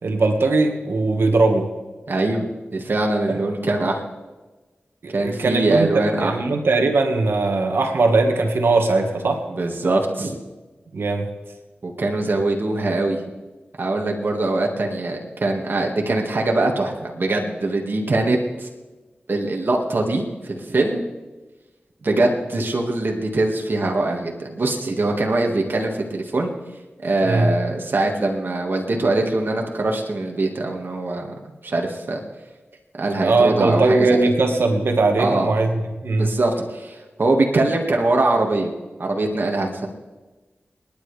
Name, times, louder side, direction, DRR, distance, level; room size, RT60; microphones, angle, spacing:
voice 1, 0.0-1.7 3.3-3.4 5.0-9.4 10.9-11.3 27.2-27.5 33.2-36.3, right 3 dB, 80° right, 4 dB, 1.7 m, -19 dB
voice 2, 2.1-2.4 2.7-4.0 5.1-6.4 9.5-10.4 11.8-13.2 13.8-18.7 19.3-21.0 22.0-26.5 27.0-31.3 31.6-32.2 33.0-34.2 35.2-35.5 36.2-38.7 39.0-39.9, right 2 dB, 60° right, 1 dB, 1.9 m, -22 dB
28.5 x 10.5 x 3.4 m, 1.2 s
cardioid pair, 50°, 4 cm